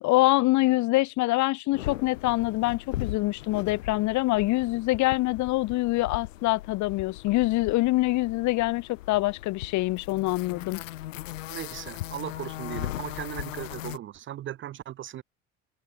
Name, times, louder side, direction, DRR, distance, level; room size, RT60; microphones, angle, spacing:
voice 1, 0.0-10.8, left 19 dB, 50° left, 0.6 m, -25 dB
sound 1, 1.7-14.0, left 15 dB, 80° left, 1.2 m, -39 dB
voice 2, 11.5-15.2, right 12 dB, 35° right, 0.5 m, -37 dB
hypercardioid pair, 65°, 38 cm